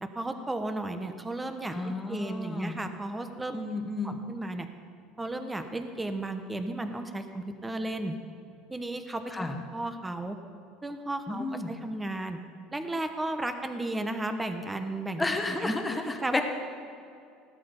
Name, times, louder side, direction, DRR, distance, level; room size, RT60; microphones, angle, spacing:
voice 1, 0.0-3.6 4.0-4.7 5.2-8.2 8.7-10.4 10.8-12.4 12.7-16.3, right 2 dB, 10° right, 7 dB, 1.0 m, -34 dB
voice 2, 1.7-2.8 3.5-4.2 9.3-9.5 11.3-11.7 15.2-16.4, left 2 dB, 10° left, 4 dB, 1.4 m, -32 dB
16.0 x 12.0 x 5.3 m, 2.3 s
cardioid pair, 135°, 0 cm